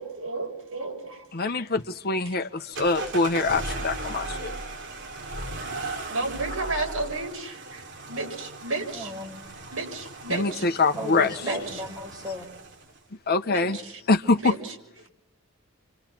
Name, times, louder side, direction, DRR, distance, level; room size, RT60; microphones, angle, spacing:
voice 1, 0.0-1.5 2.3-2.4 6.1-9.1 9.7-10.6 11.4-11.8 13.5-14.0 14.4-14.7, right 3 dB, 80° right, 6.4 m, -33 dB
voice 2, 1.3-4.5 10.3-11.3 13.3-13.8 14.1-14.6, left 3 dB, 50° left, 1.0 m, -24 dB
sound 1, 2.8-13.0, right 2 dB, 60° right, 3.5 m, -37 dB
voice 3, 8.9-9.4 11.0-12.5, left 1 dB, 20° right, 5.4 m, -35 dB
29.5 x 25.5 x 6.0 m
head